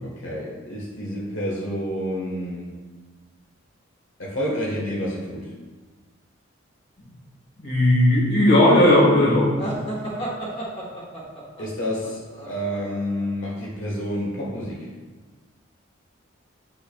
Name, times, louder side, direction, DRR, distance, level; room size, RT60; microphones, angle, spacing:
voice 1, 0.0-2.7 4.2-5.5 10.2-10.3 11.6-14.9, equal, 75° left, -5 dB, 1.3 m, -29 dB
voice 2, 7.6-9.5, left 1 dB, 50° left, -3 dB, 1.6 m, -16 dB
sound 1, 9.6-13.3, right 1 dB, 25° left, 1.3 m, -33 dB
8.5 x 5.6 x 2.3 m, 1.3 s
head